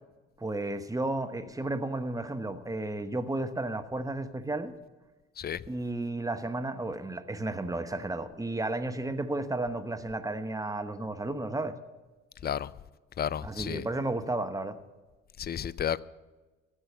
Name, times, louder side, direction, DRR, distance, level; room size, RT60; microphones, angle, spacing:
voice 1, 0.4-4.7 5.7-11.7 13.4-14.8, right 2 dB, 10° right, 1.1 m, -33 dB
voice 2, 13.2-13.8 15.4-16.0, left 9 dB, 30° left, 0.5 m, -32 dB
14.0 x 8.2 x 7.7 m
hypercardioid pair, 50°, 35 cm